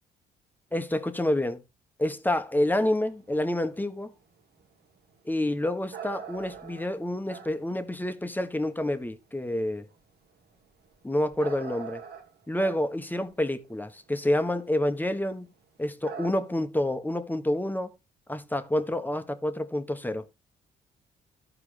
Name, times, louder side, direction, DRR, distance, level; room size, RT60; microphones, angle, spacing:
voice 1, 0.7-1.6 2.0-4.1 5.2-9.8 11.0-12.0 12.5-15.5 15.8-17.9 18.3-20.2, left 1 dB, 10° left, 1.1 m, -28 dB
sound 1, 3.1-9.1 9.6-14.9 15.2-15.3 15.6-16.7, right 7 dB, 60° right, 1.6 m, -44 dB
14.5 x 4.9 x 3.3 m
supercardioid pair, 65°, 19 cm